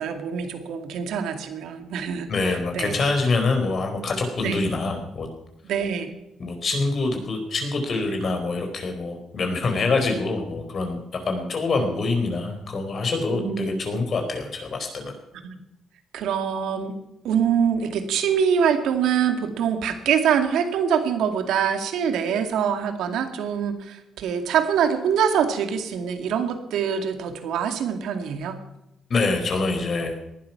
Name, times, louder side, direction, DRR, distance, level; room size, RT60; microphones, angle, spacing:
voice 1, 0.0-3.0 4.4-4.6 5.6-6.1 13.3-13.7 15.4-15.6 16.1-17.0 17.2-28.6, right 7 dB, 80° right, 7 dB, 2.3 m, -24 dB
voice 2, 2.3-5.3 6.4-15.1 29.1-30.1, left 3 dB, 50° left, 4 dB, 4.5 m, -25 dB
19.0 x 11.5 x 5.9 m, 0.87 s
cardioid pair, 90°, 0 cm